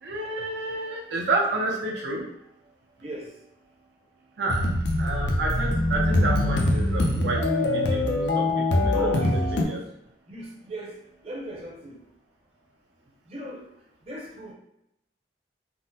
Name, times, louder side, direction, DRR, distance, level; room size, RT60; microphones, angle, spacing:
voice 1, 0.0-2.3 4.4-4.7 5.0-9.2 9.6-9.8, right 2 dB, 75° right, -2 dB, 0.6 m, -30 dB
voice 2, 3.0-3.3 8.9-9.8 10.3-12.0 13.3-13.7 14.0-14.5, right 1 dB, 35° right, -4 dB, 0.7 m, -37 dB
sound 1, 4.5-9.6, left 1 dB, 75° left, 0.5 m, -23 dB
3.5 x 2.0 x 2.7 m, 0.81 s
head